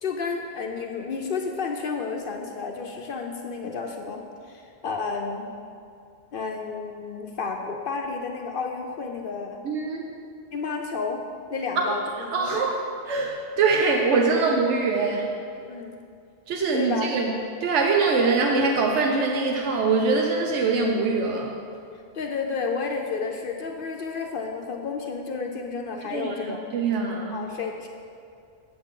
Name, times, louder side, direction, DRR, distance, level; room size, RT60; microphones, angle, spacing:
voice 1, 0.0-5.5 6.3-9.7 10.5-11.2 11.5-12.6 15.7-16.0 16.7-17.1 22.1-26.6 27.3-27.9, left 4 dB, 60° left, 2 dB, 0.7 m, -31 dB
voice 2, 9.6-10.0 11.8-12.0 12.3-15.4 16.5-21.6 26.0-27.5, right 4 dB, 90° right, 1 dB, 1.0 m, -23 dB
7.8 x 7.2 x 3.7 m, 2.4 s
omnidirectional pair, 1.2 m